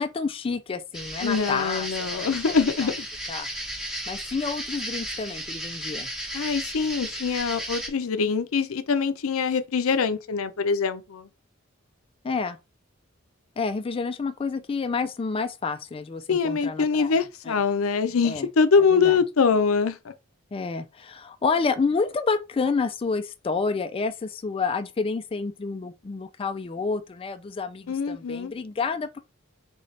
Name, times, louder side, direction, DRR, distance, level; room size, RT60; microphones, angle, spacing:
voice 1, 0.0-2.3 2.8-2.9 3.3-3.5 4.1-6.1 12.2-12.6 13.6-17.5 18.2-18.5 18.9-19.2 20.5-29.2, left 4 dB, 25° left, 0.3 m, -29 dB
sound 1, 0.9-7.9, right 1 dB, 5° right, 0.9 m, -34 dB
voice 2, 1.2-3.1 6.3-11.3 16.3-20.1 27.9-28.5, left 5 dB, 85° left, 0.5 m, -24 dB
4.0 x 3.8 x 3.2 m
head